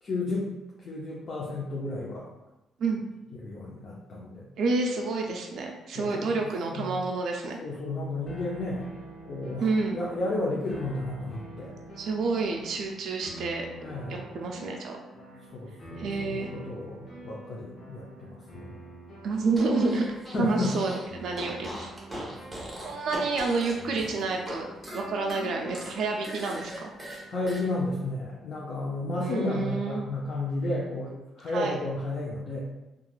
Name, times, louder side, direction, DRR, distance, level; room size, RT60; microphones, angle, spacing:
voice 1, 0.0-0.5 0.8-2.3 3.3-4.5 5.9-6.4 6.7-6.9 7.6-8.9 9.2-11.7 13.8-14.3 15.5-18.8 20.3-20.7 22.1-22.4 27.3-32.6, left 2 dB, 55° left, -4 dB, 0.5 m, -32 dB
voice 2, 4.6-7.6 9.6-10.0 12.0-13.7 14.1-15.0 16.0-16.5 19.2-21.9 22.8-26.9 29.2-30.0 31.5-31.7, right 3 dB, 70° right, 1 dB, 0.3 m, -29 dB
sound 1, 8.3-27.5, right 1 dB, 35° left, 0.8 m, -46 dB
Fart, 19.5-21.1 21.3-24.6 24.8-27.6, equal, 15° right, 0.9 m, -40 dB
3.0 x 2.3 x 2.3 m, 1.0 s
cardioid pair, 90°, 0 cm